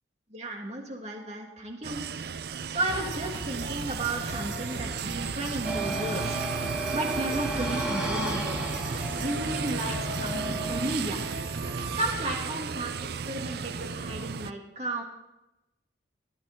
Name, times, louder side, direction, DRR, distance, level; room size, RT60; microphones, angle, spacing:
voice 1, 0.3-2.0 2.7-6.4 6.9-8.6 9.2-11.2 12.0-15.0, right 1 dB, 35° right, 0 dB, 2.5 m, -34 dB
sound 1, 1.8-14.5, right 6 dB, 55° right, 0.4 m, -35 dB
sound 2, 2.9-12.1, right 2 dB, 80° right, 1.7 m, -37 dB
sound 3, 5.6-10.9, right 1 dB, 5° right, 2.8 m, -33 dB
19.0 x 13.5 x 3.7 m, 0.95 s
head